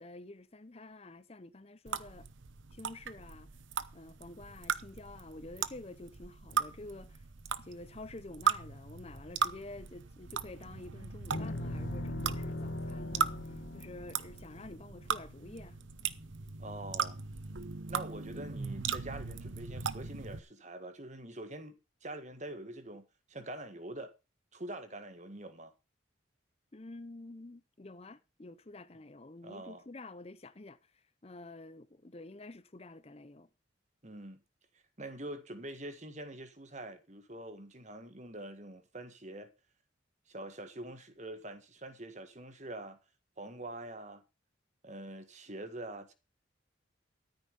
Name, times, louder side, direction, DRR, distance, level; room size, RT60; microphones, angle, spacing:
voice 1, 0.0-2.3 2.7-3.5 3.9-7.3 7.6-15.8 26.7-33.5, left 2 dB, 30° left, 0.7 m, -49 dB
sound 1, 1.9-20.4, right 6 dB, 75° right, 0.9 m, -38 dB
sound 2, 11.3-15.7, left 1 dB, 60° left, 1.2 m, -40 dB
voice 2, 16.6-17.2 17.9-24.1 24.5-25.7 29.4-29.8 34.0-34.4 35.0-39.5 40.3-43.0 43.4-44.2 44.8-46.1, right 1 dB, 35° right, 1.8 m, -45 dB
13.5 x 9.6 x 5.3 m
head